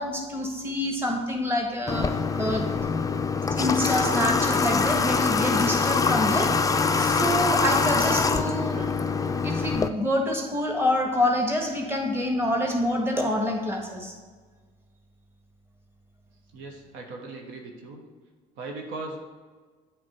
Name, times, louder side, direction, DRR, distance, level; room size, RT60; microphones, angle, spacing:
voice 1, 0.0-2.6 3.6-6.5 7.0-8.9 9.4-14.1, left 1 dB, 10° right, 1 dB, 1.5 m, -27 dB
Water / Water tap faucet, 1.9-9.9, left 4 dB, 20° left, 0.4 m, -24 dB
voice 2, 16.5-18.0 18.6-19.2, right 3 dB, 80° right, 2 dB, 1.0 m, -38 dB
8.5 x 3.4 x 4.3 m, 1.4 s
supercardioid pair, 65°, 19 cm